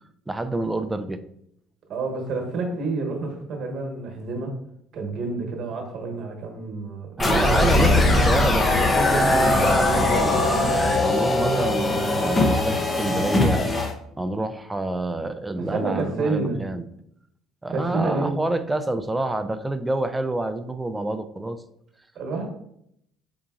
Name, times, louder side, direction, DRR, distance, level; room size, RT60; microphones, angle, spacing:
voice 1, 0.3-1.2 7.2-10.5 11.0-13.6 14.2-16.8 17.6-21.6, right 2 dB, 15° right, 10 dB, 0.4 m, -27 dB
voice 2, 1.9-4.5 4.9-8.0 15.5-16.6 17.7-18.4 22.1-22.5, right 3 dB, 55° right, 1 dB, 1.2 m, -29 dB
sound 1, 7.2-13.9, left 2 dB, 25° left, 0.8 m, -20 dB
3.9 x 3.7 x 2.4 m, 0.74 s
hypercardioid pair, 70°, 0 cm